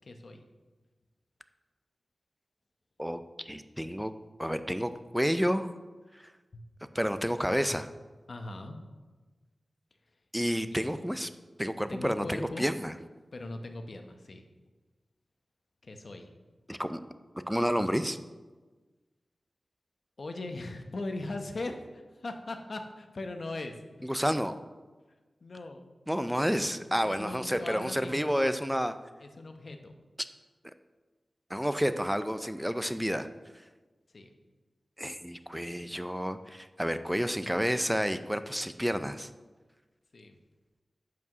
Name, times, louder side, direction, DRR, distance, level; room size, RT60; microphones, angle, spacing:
voice 1, 0.0-0.4 6.5-6.6 8.3-8.8 10.7-10.9 11.9-12.7 13.3-14.4 15.8-16.3 20.2-23.7 25.4-25.9 26.9-28.3 29.2-29.9 34.1-34.3 40.1-40.4, left 2 dB, 60° left, 5 dB, 0.8 m, -40 dB
voice 2, 3.0-4.1 4.4-5.7 6.9-7.9 10.3-11.3 11.6-12.9 16.7-17.0 17.5-18.2 24.0-24.6 26.1-29.0 31.5-33.3 35.0-39.3, equal, 5° right, 11 dB, 0.4 m, -30 dB
8.3 x 4.7 x 6.0 m, 1.3 s
wide cardioid pair, 95°, 0 cm